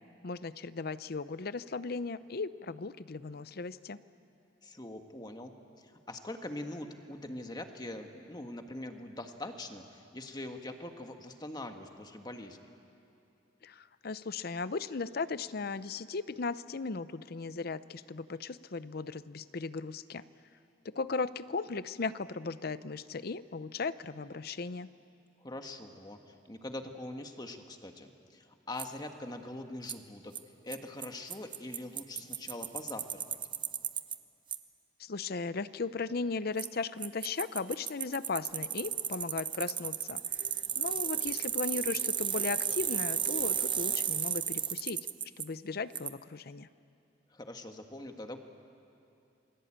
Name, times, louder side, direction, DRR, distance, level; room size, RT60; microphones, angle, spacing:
voice 1, 0.2-4.0 13.6-20.2 20.8-24.9 35.0-40.4 40.8-45.0 45.4-46.7, left 4 dB, 55° left, 15 dB, 0.6 m, -37 dB
voice 2, 4.6-12.6 25.4-30.3 30.6-33.4 47.3-48.4, left 1 dB, 25° left, 5 dB, 1.6 m, -43 dB
Bicycle, 28.8-28.9 29.9-30.0 30.4-30.5 30.7-30.8 31.0-31.1 31.3-34.2 34.5-34.6 36.6-36.7 37.0-45.4 46.0-46.1, right 8 dB, 25° right, 0.8 m, -33 dB
28.5 x 22.0 x 8.8 m, 2.6 s
head